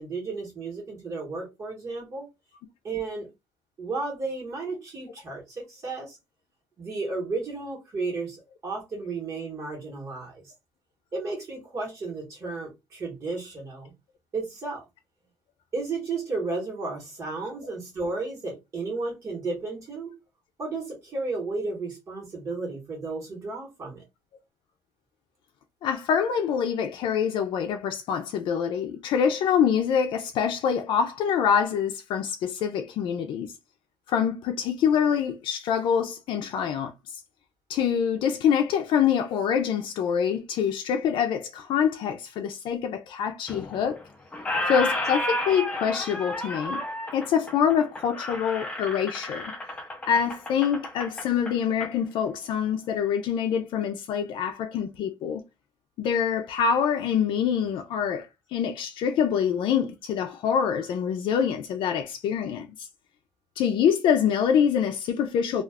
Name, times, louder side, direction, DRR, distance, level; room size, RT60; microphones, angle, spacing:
voice 1, 0.0-2.3 2.8-3.3 3.8-6.2 6.8-10.4 11.1-13.9 14.3-14.8 15.7-20.1 20.6-24.0, right 3 dB, 40° right, 1.2 m, -33 dB
voice 2, 25.8-33.5 34.1-37.2 37.7-44.0 44.7-46.8 47.1-49.5 50.1-55.4 56.0-62.9 63.6-65.6, left 8 dB, 85° left, 0.4 m, -25 dB
Squeak, 43.5-44.0 44.3-51.9, left 1 dB, 15° left, 0.5 m, -32 dB
2.4 x 2.3 x 3.4 m
cardioid pair, 170°, 8 cm